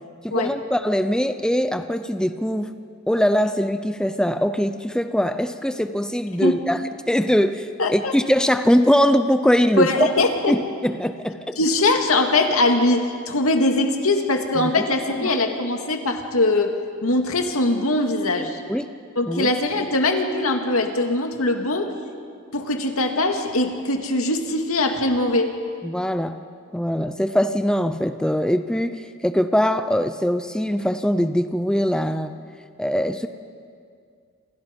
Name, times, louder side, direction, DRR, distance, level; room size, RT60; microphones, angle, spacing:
voice 1, 0.2-2.7 3.1-10.1 10.5-11.6 14.6-14.9 15.2-15.3 18.7-19.0 19.3-19.5 25.8-26.4 26.7-32.3 32.8-33.3, equal, 5° left, 9 dB, 0.7 m, -22 dB
voice 2, 7.8-8.1 9.8-10.6 11.6-16.8 17.0-18.6 19.2-21.9 22.5-25.5, left 2 dB, 85° left, 4 dB, 2.3 m, -21 dB
28.5 x 27.0 x 5.4 m, 2.2 s
head